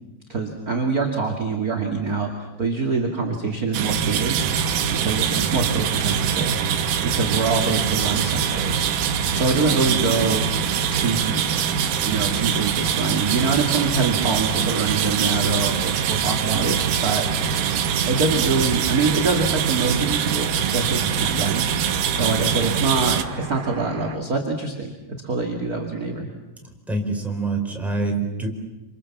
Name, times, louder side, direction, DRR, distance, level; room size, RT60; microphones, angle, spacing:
voice 1, 0.3-6.6 7.1-8.8 9.3-10.4 10.9-11.4 12.0-17.6 18.1-21.6 22.2-24.9 25.2-26.3, right 3 dB, 30° right, 2 dB, 2.4 m, -25 dB
sound 1, 3.7-23.2, right 8 dB, 80° right, 2.8 m, -23 dB
sound 2, 4.4-24.2, right 5 dB, 50° right, 2.8 m, -36 dB
voice 2, 26.6-28.5, right 3 dB, ahead, 1 dB, 4.3 m, -26 dB
28.0 x 27.0 x 7.4 m, 1.1 s
omnidirectional pair, 3.8 m